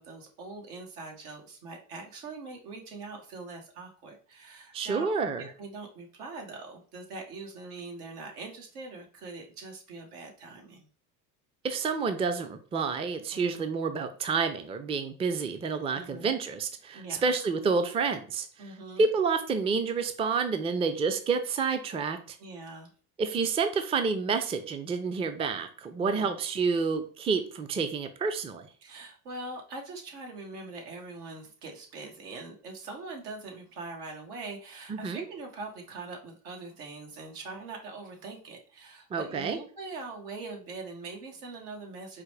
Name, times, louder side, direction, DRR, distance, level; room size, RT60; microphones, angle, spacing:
voice 1, 0.0-10.9 13.3-13.6 15.9-16.3 16.9-17.3 18.6-19.1 22.4-22.9 26.0-26.3 28.8-42.2, right 3 dB, 85° right, 2 dB, 1.3 m, -42 dB
voice 2, 4.7-5.5 11.6-18.5 19.0-22.4 23.2-28.7 34.9-35.2 39.1-39.6, right 5 dB, 15° right, 8 dB, 0.3 m, -29 dB
4.8 x 2.2 x 3.2 m, 0.41 s
supercardioid pair, 85°, 44 cm